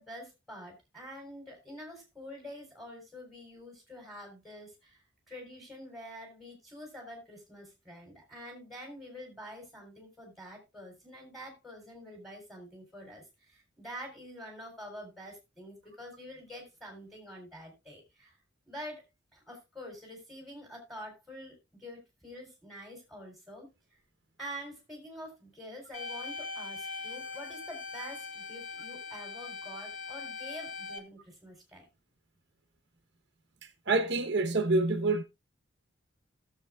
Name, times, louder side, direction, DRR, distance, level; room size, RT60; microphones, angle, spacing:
voice 1, 0.0-5.0 5.3-18.4 18.7-19.0 19.3-23.7 24.4-31.9, equal, ahead, 3.8 m, -46 dB
sound 1, 25.9-31.0, left 4 dB, 40° left, 1.6 m, -41 dB
voice 2, 33.9-35.2, right 3 dB, 65° right, 1.0 m, -26 dB
17.0 x 7.3 x 2.3 m
head